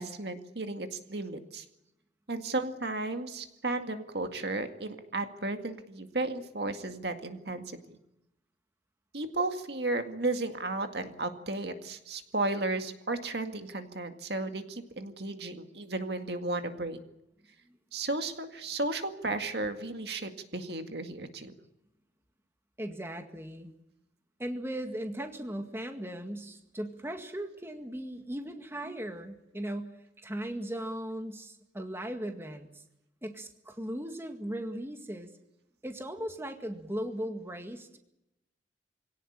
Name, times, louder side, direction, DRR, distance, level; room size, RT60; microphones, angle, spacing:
voice 1, 0.0-1.6 2.3-7.8 9.1-17.0 17.9-21.5, right 2 dB, 60° right, 6 dB, 2.1 m, -34 dB
voice 2, 22.8-23.7 24.4-29.9 30.2-32.8 33.2-35.3 35.8-38.0, right 1 dB, 15° right, 5 dB, 1.9 m, -38 dB
25.0 x 17.5 x 8.8 m, 0.88 s
head